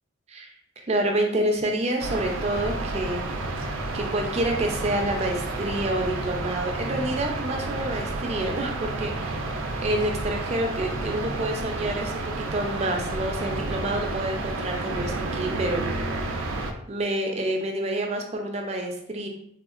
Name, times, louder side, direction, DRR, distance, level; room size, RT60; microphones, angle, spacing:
voice 1, 0.9-3.5 3.9-9.6 9.8-15.8 16.4-19.3, right 1 dB, 35° right, 2 dB, 0.4 m, -28 dB
sound 1, 2.0-16.7, right 2 dB, 90° right, 0.4 m, -30 dB
3.6 x 2.4 x 2.4 m, 0.68 s
head